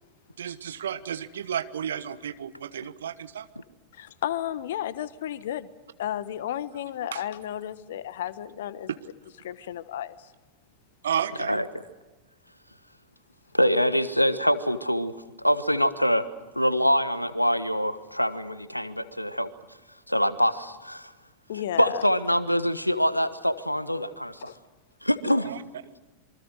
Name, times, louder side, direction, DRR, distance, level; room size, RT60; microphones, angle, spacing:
voice 1, 0.4-3.5 7.1-7.2 8.9-9.0 11.0-11.6 25.4-25.6, right 9 dB, 65° right, 1.3 m, -32 dB
voice 2, 3.9-5.7 6.0-8.9 9.4-10.3 21.5-22.0 24.5-24.6 25.3-25.4, left 11 dB, 60° left, 1.2 m, -33 dB
voice 3, 13.5-15.1 15.4-16.3 16.5-19.5 20.1-21.1 21.8-24.5 25.0-25.5, equal, 90° left, 1.2 m, -24 dB
27.0 x 24.0 x 6.4 m
figure-of-eight pair, 90°, 0 cm